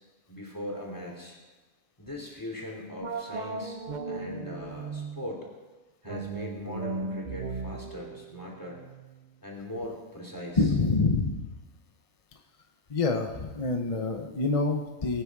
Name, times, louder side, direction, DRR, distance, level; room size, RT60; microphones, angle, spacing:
voice 1, 0.3-1.4 2.0-5.5 6.0-8.8 9.4-10.6, left 1 dB, 15° left, -1 dB, 3.0 m, -40 dB
sound 1, 3.0-5.3 6.0-9.4, right 3 dB, 40° right, 0.8 m, -37 dB
voice 2, 10.6-11.5 12.9-15.2, left 3 dB, 30° left, 5 dB, 0.9 m, -26 dB
21.0 x 9.2 x 4.8 m, 1.2 s
omnidirectional pair, 1.4 m